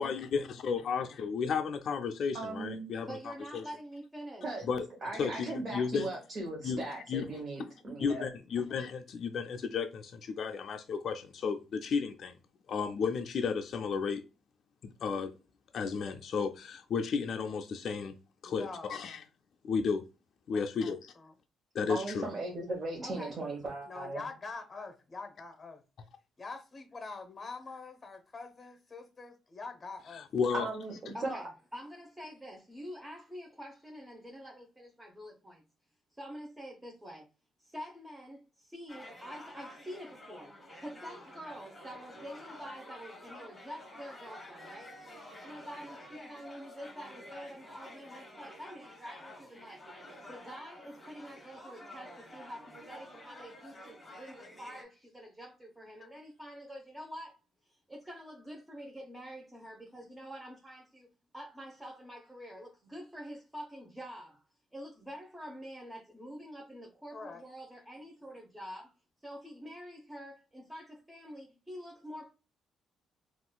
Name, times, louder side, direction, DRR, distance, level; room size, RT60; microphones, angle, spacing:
voice 1, 0.0-3.6 4.6-4.8 5.1-6.1 6.6-7.4 8.0-12.4 12.7-14.2 15.0-15.4 15.7-18.1 18.4-19.2 19.6-20.0 20.5-21.1 21.7-22.3 30.1-30.7, left 5 dB, 60° left, 0.3 m, -33 dB
voice 2, 2.3-2.9 4.4-4.6 5.0-8.3 21.9-24.2 30.5-31.4, right 2 dB, 45° right, 0.9 m, -37 dB
voice 3, 3.1-4.5 23.0-23.4 31.1-35.6 36.1-37.2 37.6-44.9 45.2-49.8 50.3-61.1 61.3-64.4 64.7-68.9 69.2-72.3, equal, 10° right, 0.7 m, -47 dB
voice 4, 18.4-19.0 20.5-21.3 23.8-25.8 26.4-30.3 56.0-56.1 67.1-67.4, left 4 dB, 30° left, 0.7 m, -45 dB
sound 1, 38.9-54.8, left 1 dB, 15° left, 1.5 m, -50 dB
3.6 x 2.4 x 2.2 m
cardioid pair, 90°, 0 cm